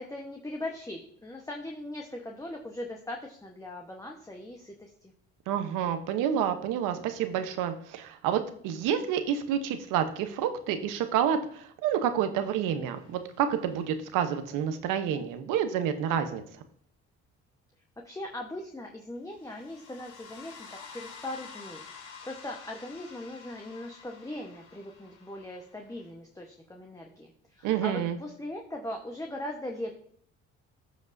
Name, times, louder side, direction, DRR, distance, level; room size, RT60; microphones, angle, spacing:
voice 1, 0.0-5.1 18.0-21.8 22.2-27.3 27.6-29.9, left 1 dB, 10° left, 1 dB, 1.1 m, -39 dB
voice 2, 5.5-16.4 27.6-28.2, right 9 dB, 80° right, 9 dB, 1.0 m, -29 dB
sound 1, 13.0-14.1 19.3-26.1, left 5 dB, 70° left, 2.6 m, -49 dB
14.0 x 5.2 x 2.6 m, 0.62 s
supercardioid pair, 80°, 31 cm